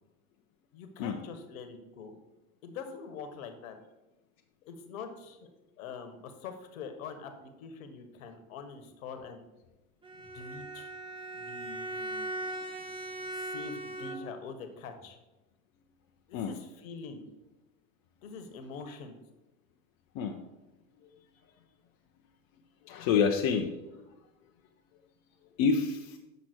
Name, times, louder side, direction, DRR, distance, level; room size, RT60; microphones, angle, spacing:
voice 1, 0.7-2.2 2.6-3.7 4.6-5.5 5.8-9.4 10.3-10.9 11.3-12.3 13.4-15.2 16.3-17.2 18.2-19.1, left 5 dB, 65° left, 7 dB, 1.4 m, -44 dB
Bowed string instrument, 10.0-14.5, right 2 dB, 10° right, 1.1 m, -39 dB
voice 2, 22.8-24.0 25.6-26.2, left 6 dB, 50° left, 2 dB, 0.8 m, -28 dB
7.6 x 6.1 x 4.5 m, 1.0 s
hypercardioid pair, 105°, 44 cm